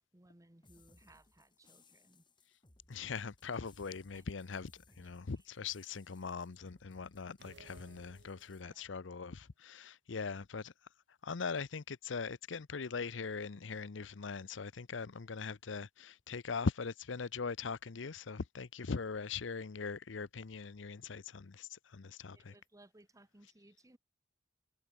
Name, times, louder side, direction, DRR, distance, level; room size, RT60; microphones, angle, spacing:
voice 1, 0.0-2.3 4.1-4.2 4.9-5.1 8.6-8.9 22.3-24.0, right 1 dB, 20° right, 1.3 m, -63 dB
sound 1, 0.6-8.6, left 3 dB, 25° left, 2.0 m, -66 dB
voice 2, 2.9-4.7 5.0-10.7 11.2-22.5, left 5 dB, 80° left, 0.7 m, -41 dB
sound 2, 7.4-8.9, right 3 dB, 65° right, 1.0 m, -60 dB
head